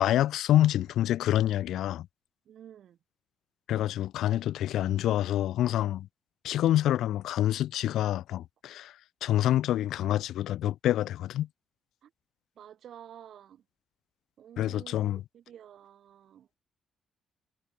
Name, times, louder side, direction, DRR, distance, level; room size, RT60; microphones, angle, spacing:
voice 1, 0.0-2.1 3.7-6.1 6.4-8.9 9.2-11.5 14.6-15.2, left 13 dB, 80° left, 2.4 m, -27 dB
voice 2, 2.5-3.0 6.7-6.8 12.0-12.1 12.6-13.6 14.4-15.0 15.3-16.5, right 10 dB, 60° right, 7.4 m, -50 dB
cardioid pair, 140°, 0 cm